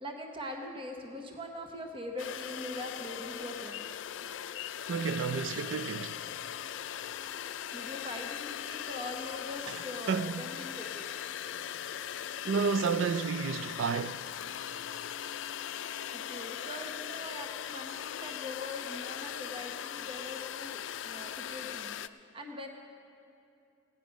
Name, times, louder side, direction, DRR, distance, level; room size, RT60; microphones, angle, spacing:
voice 1, 0.0-3.8 7.7-11.1 16.1-22.7, left 1 dB, 25° right, 0.9 m, -42 dB
sound 1, 2.2-22.1, left 10 dB, 75° left, 0.4 m, -39 dB
voice 2, 4.9-6.3 10.1-10.5 12.4-14.3, right 5 dB, 85° right, 0.4 m, -31 dB
17.0 x 9.9 x 5.1 m
head